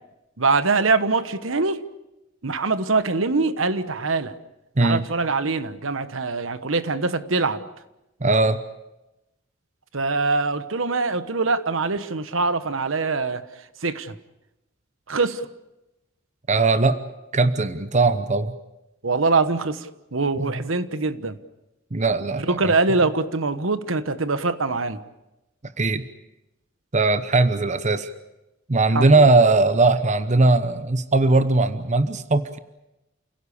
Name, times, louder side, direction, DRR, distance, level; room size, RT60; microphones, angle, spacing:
voice 1, 0.4-1.8 2.4-4.4 4.8-7.7 9.9-13.4 13.8-14.2 15.1-15.5 19.0-21.4 22.4-25.0 28.9-29.5, right 3 dB, 70° right, 12 dB, 1.2 m, -23 dB
voice 2, 8.2-8.6 16.5-17.0 17.3-18.5 20.4-20.5 21.9-22.7 25.8-26.1 26.9-28.1 28.7-32.6, right 3 dB, 35° right, 12 dB, 0.9 m, -19 dB
29.5 x 17.0 x 8.5 m, 0.95 s
head